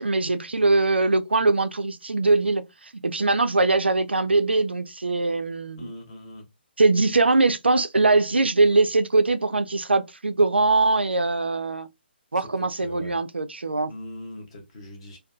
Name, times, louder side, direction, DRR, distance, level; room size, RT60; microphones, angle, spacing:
voice 1, 0.0-5.9 6.8-11.9 12.3-13.9, right 3 dB, 75° right, 0.3 m, -22 dB
voice 2, 5.8-6.5 12.3-13.2 13.9-15.2, left 1 dB, 30° left, 0.8 m, -41 dB
2.6 x 2.2 x 2.2 m
figure-of-eight pair, 140°, 6 cm